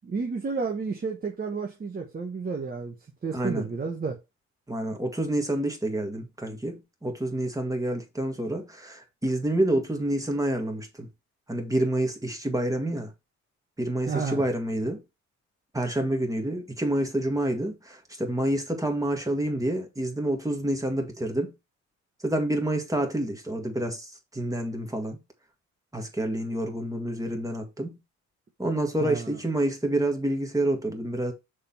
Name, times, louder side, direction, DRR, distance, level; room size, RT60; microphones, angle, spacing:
voice 1, 0.0-2.9 3.2-4.2 14.1-14.4 29.0-29.4, right 4 dB, 30° right, 1.2 m, -31 dB
voice 2, 3.3-3.7 4.7-11.1 11.5-13.1 13.8-15.0 15.7-21.5 22.2-25.2 25.9-27.9 28.6-31.3, right 1 dB, 10° right, 1.9 m, -28 dB
6.6 x 3.7 x 4.5 m
cardioid pair, 90°, 30 cm